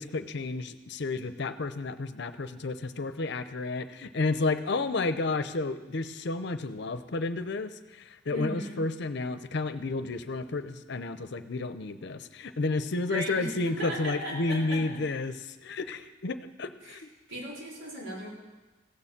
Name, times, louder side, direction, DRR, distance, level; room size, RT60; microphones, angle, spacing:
voice 1, 0.0-17.1, left 3 dB, 65° left, 11 dB, 0.7 m, -31 dB
voice 2, 8.3-8.8 13.1-15.0 16.8-17.0 17.3-18.3, equal, 85° right, -4 dB, 3.9 m, -37 dB
16.0 x 6.9 x 7.3 m, 1.2 s
head